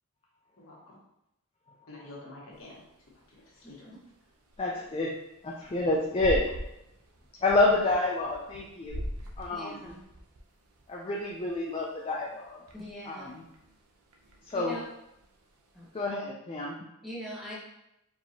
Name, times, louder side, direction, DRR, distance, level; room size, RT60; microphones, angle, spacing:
voice 1, 0.6-1.0 1.9-2.8 3.3-3.9, left 2 dB, 65° left, -4 dB, 1.2 m, -48 dB
sound 1, 2.5-16.1, equal, 75° right, 0.6 m, -44 dB
voice 2, 3.6-4.0 9.5-10.0 12.7-13.3 14.5-14.8 15.7-15.9 17.0-17.5, equal, ahead, -7 dB, 0.9 m, -42 dB
voice 3, 4.6-5.1 5.4-6.4 7.4-9.0 9.4-9.9 10.9-12.6 13.1-13.4 14.5-14.8 15.9-16.7, left 2 dB, 25° left, -2 dB, 0.4 m, -28 dB
4.5 x 2.8 x 2.8 m, 0.85 s
head